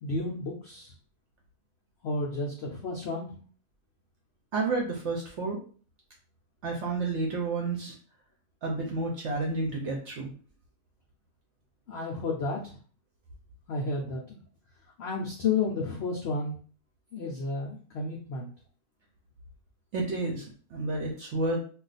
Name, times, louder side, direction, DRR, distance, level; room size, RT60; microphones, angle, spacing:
voice 1, 0.0-0.9 2.0-3.4 11.9-12.8 13.7-14.4 15.0-16.6 17.1-18.5, left 3 dB, 70° left, -2 dB, 0.6 m, -32 dB
voice 2, 4.5-5.6 6.6-8.0 8.6-10.3 19.9-21.6, right 3 dB, 60° right, 0 dB, 0.8 m, -30 dB
2.4 x 2.3 x 3.9 m, 0.42 s
omnidirectional pair, 1.7 m